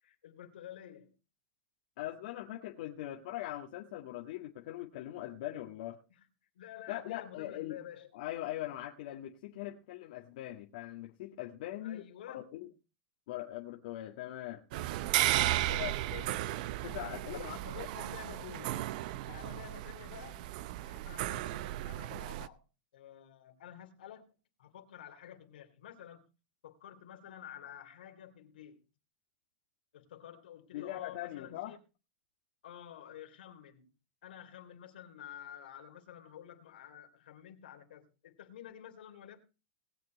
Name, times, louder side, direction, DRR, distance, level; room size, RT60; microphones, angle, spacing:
voice 1, 0.0-1.1 6.1-6.2 6.5-8.1 11.8-12.4 15.5-16.6 17.3-18.8 19.3-20.5 20.8-22.6 22.9-24.3 24.6-26.2 26.6-28.8 29.9-31.8 32.6-33.9 34.2-39.4, left 10 dB, 90° left, 3.2 m, -50 dB
voice 2, 2.0-6.0 6.9-7.8 8.1-12.7 13.3-14.6 15.8-15.9 16.8-17.6 30.7-31.8, left 14 dB, 65° left, 1.8 m, -41 dB
sound 1, 14.7-22.5, right 15 dB, 60° right, 0.7 m, -35 dB
20.0 x 7.4 x 4.1 m
supercardioid pair, 145°, 5 cm